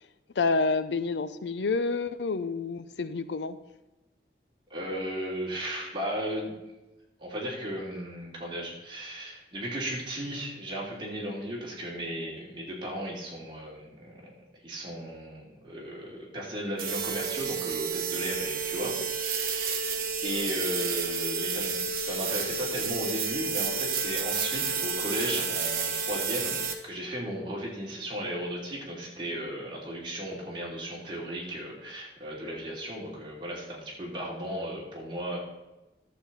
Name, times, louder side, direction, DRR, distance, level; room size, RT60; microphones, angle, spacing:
voice 1, 0.4-3.6 18.8-19.1, left 3 dB, 85° left, 13 dB, 0.6 m, -29 dB
voice 2, 4.7-6.5 7.2-14.2 14.6-19.9 20.2-35.4, equal, 25° right, -5 dB, 3.0 m, -35 dB
sound 1, 16.8-26.7, right 5 dB, 50° right, 1.3 m, -30 dB
11.5 x 7.7 x 4.1 m, 1.0 s
head